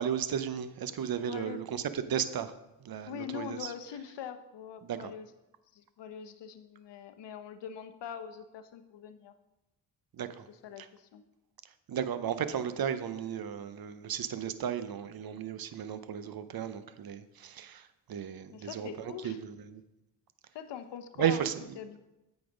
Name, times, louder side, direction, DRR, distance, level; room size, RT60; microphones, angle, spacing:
voice 1, 0.0-3.7 4.8-5.1 10.1-10.5 10.8-10.9 11.6-19.8 21.2-21.5, right 9 dB, 50° right, 12 dB, 0.7 m, -34 dB
voice 2, 1.3-1.6 3.1-5.3 5.7-9.3 10.5-11.2 18.5-19.4 20.5-21.5 21.8-22.0, left 8 dB, 65° left, 9 dB, 0.8 m, -43 dB
8.4 x 4.1 x 5.0 m, 0.98 s
supercardioid pair, 50°, 46 cm